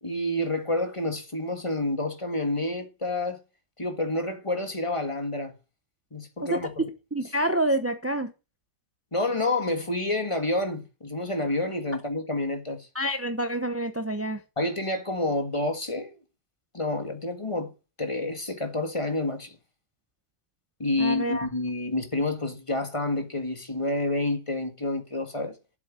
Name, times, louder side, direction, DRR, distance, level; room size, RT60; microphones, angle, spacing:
voice 1, 0.0-3.4 3.8-5.5 6.1-6.8 9.1-12.9 14.6-16.1 16.7-17.7 18.0-19.6 20.8-25.6, left 2 dB, 20° left, 1.7 m, -28 dB
voice 2, 6.5-8.3 12.9-14.4 21.0-21.5, right 1 dB, 15° right, 0.4 m, -28 dB
9.0 x 7.7 x 7.5 m
omnidirectional pair, 1.7 m